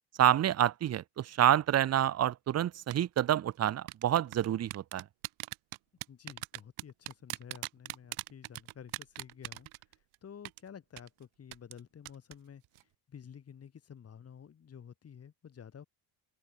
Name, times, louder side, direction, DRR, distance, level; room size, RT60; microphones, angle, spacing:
voice 1, 0.2-5.0, right 11 dB, 30° right, 0.9 m, -28 dB
sound 1, 2.9-3.2 3.9-10.1 10.4-10.6 11.0-11.1 11.5-11.8 12.1-12.3 12.6-12.8, right 20 dB, 80° right, 3.3 m, -40 dB
voice 2, 6.1-15.9, left 8 dB, 30° left, 6.9 m, -51 dB
cardioid pair, 170°, 49 cm